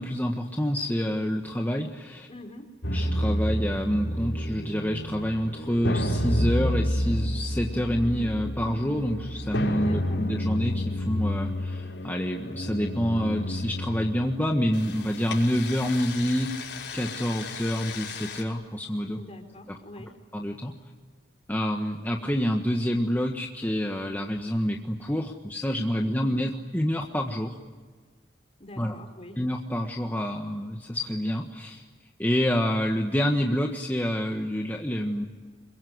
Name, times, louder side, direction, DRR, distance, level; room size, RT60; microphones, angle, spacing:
voice 1, 0.0-2.3 2.9-16.5 16.9-19.2 19.7-19.8 20.3-20.7 21.5-27.5 28.8-29.0 29.4-31.9 32.2-35.3, equal, 10° left, 1 dB, 1.5 m, -27 dB
voice 2, 2.3-2.7 9.8-10.2 19.2-20.1 25.9-26.4 28.6-29.4, left 1 dB, 35° left, 6 dB, 3.6 m, -44 dB
sound 1, 2.8-18.4, left 1 dB, 80° left, 5.7 m, -30 dB
27.0 x 23.0 x 9.6 m, 1.4 s
head